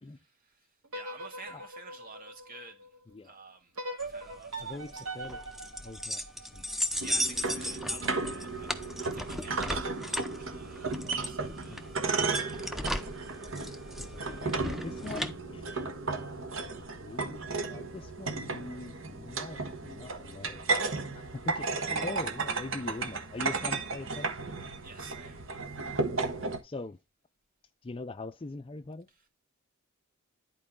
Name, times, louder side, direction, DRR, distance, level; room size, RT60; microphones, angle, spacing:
voice 1, 0.0-0.7 0.9-2.9 3.2-5.0 7.0-11.0 11.2-11.9 21.6-21.9 24.8-25.8, right 3 dB, 40° right, 2.2 m, -51 dB
sound 1, 0.8-3.0 3.8-6.9, right 2 dB, 85° right, 2.3 m, -42 dB
sound 2, 4.0-15.3, left 1 dB, ahead, 0.7 m, -36 dB
voice 2, 4.6-5.4 5.8-6.6 11.7-11.9 14.0-15.7 16.3-20.6 21.1-24.4 26.1-26.3 26.6-27.0 27.8-29.1, left 2 dB, 25° left, 0.4 m, -42 dB
sound 3, 7.0-26.6, right 3 dB, 65° right, 1.3 m, -34 dB
11.0 x 4.6 x 3.7 m
head